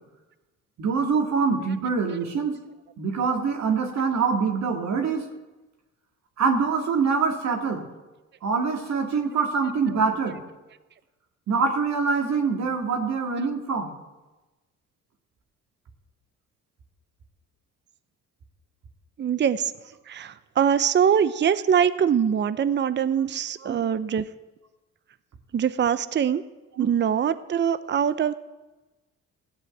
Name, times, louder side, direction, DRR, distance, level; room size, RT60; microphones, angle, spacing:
voice 1, 0.8-2.5 3.0-5.2 6.4-7.8 8.4-10.4 11.5-13.9 23.6-23.8 26.8-26.9, right 5 dB, 65° right, 3 dB, 2.1 m, -24 dB
voice 2, 19.2-19.7 20.1-24.3 25.5-26.4 26.8-28.3, right 8 dB, 35° right, 14 dB, 0.6 m, -23 dB
15.5 x 8.0 x 7.9 m, 1.1 s
cardioid pair, 90°, 30 cm